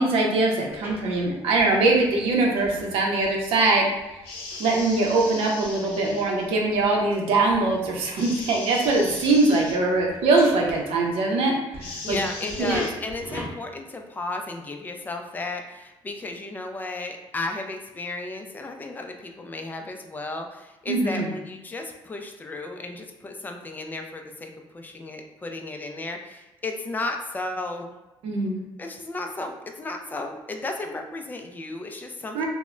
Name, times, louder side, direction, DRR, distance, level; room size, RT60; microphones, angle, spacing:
voice 1, 0.0-3.9 4.6-12.2 12.6-12.8 20.9-21.3 28.2-28.6 32.3-32.5, right 2 dB, 80° right, 0 dB, 0.6 m, -22 dB
sound 1, 0.7-11.3 11.7-13.5, right 1 dB, 25° right, 0.9 m, -42 dB
sound 2, 4.2-6.5 8.2-9.8 11.8-12.9, left 3 dB, 80° left, 0.6 m, -38 dB
voice 2, 12.0-27.9 28.8-32.5, left 2 dB, 20° left, 4 dB, 0.3 m, -34 dB
2.1 x 2.0 x 3.6 m, 1.0 s
cardioid pair, 115°, 10 cm